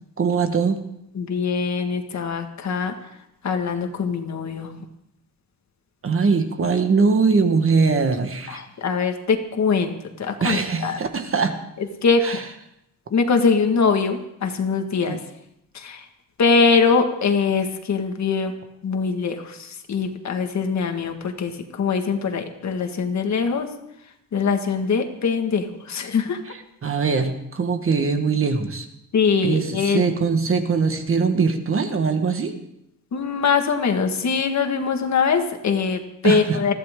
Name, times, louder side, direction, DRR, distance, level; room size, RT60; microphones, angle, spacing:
voice 1, 0.2-0.8 6.0-8.6 10.4-11.6 12.2-12.4 15.1-15.2 26.5-28.9 29.4-32.5 36.2-36.6, right 5 dB, 35° right, 7 dB, 1.3 m, -21 dB
voice 2, 1.2-2.9 3.4-4.7 8.5-11.0 12.0-12.4 13.1-15.2 15.7-16.0 16.4-18.5 18.8-23.7 24.3-26.4 29.1-30.1 33.1-36.7, left 5 dB, 50° left, 5 dB, 1.7 m, -22 dB
21.0 x 14.5 x 3.7 m, 0.80 s
wide cardioid pair, 155°, 36 cm